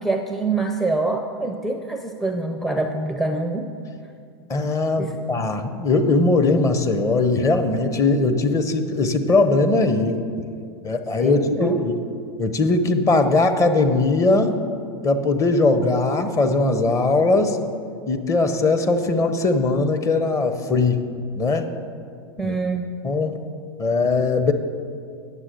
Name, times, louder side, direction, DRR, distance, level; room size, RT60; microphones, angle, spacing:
voice 1, 0.0-3.7 5.0-5.2 11.2-11.8 22.4-22.8, right 3 dB, ahead, 4 dB, 0.5 m, -25 dB
voice 2, 4.5-10.2 10.8-12.0 12.4-14.6 15.0-17.6 18.1-21.0 21.3-21.7 22.4-22.5 23.0-23.4 23.8-24.5, left 3 dB, 25° left, 7 dB, 0.9 m, -20 dB
9.8 x 7.3 x 6.6 m, 2.3 s
hypercardioid pair, 100°, 13 cm